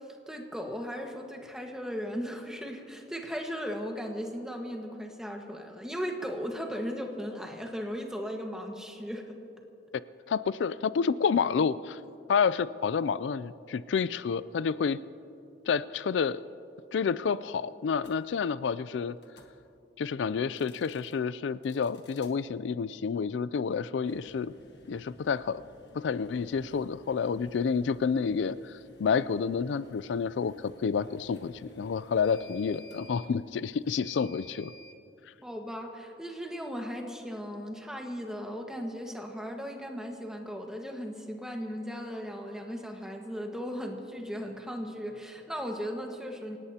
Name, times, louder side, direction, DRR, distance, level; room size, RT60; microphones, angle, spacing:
voice 1, 0.3-9.4 35.4-46.6, equal, 5° right, 1 dB, 1.5 m, -37 dB
voice 2, 10.3-12.0 12.3-15.0 15.7-16.4 16.9-19.2 20.0-24.5 24.9-25.6 25.9-28.7 29.0-34.7, left 6 dB, 80° left, 16 dB, 0.4 m, -29 dB
sound 1, 18.0-18.2 19.2-19.5 20.4-21.1 21.6-22.3 23.9-35.0, left 2 dB, 65° left, 1.6 m, -54 dB
27.5 x 18.0 x 2.9 m, 2.7 s
head